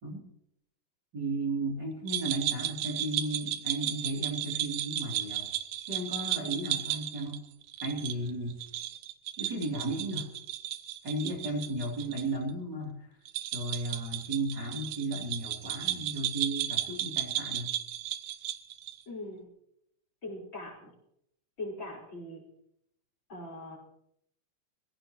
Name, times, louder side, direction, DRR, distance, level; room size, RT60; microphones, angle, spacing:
voice 1, 1.1-5.4 5.9-7.4 7.8-8.6 9.4-10.3 11.0-13.0 13.5-17.7, right 2 dB, 30° right, -4 dB, 3.1 m, -34 dB
sound 1, 2.1-12.2 12.5-12.6 13.3-19.0, right 13 dB, 85° right, 1.9 m, -34 dB
voice 2, 19.1-19.5 20.2-20.9 21.6-22.4 23.3-23.8, left 2 dB, 30° left, 0 dB, 4.7 m, -41 dB
26.5 x 16.0 x 3.0 m, 0.76 s
omnidirectional pair, 4.7 m